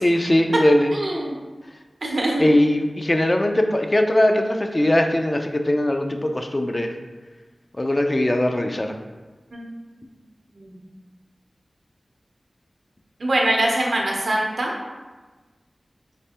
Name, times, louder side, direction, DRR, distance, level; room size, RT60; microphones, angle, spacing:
voice 1, 0.0-0.9 2.4-6.9 7.8-8.9, left 1 dB, 35° left, 4 dB, 0.3 m, -20 dB
voice 2, 0.9-1.4 2.0-2.4 9.5-9.7 10.6-10.8 13.2-14.7, right 1 dB, 75° right, -1 dB, 0.7 m, -23 dB
3.3 x 3.3 x 2.8 m, 1.3 s
wide cardioid pair, 50°, 0 cm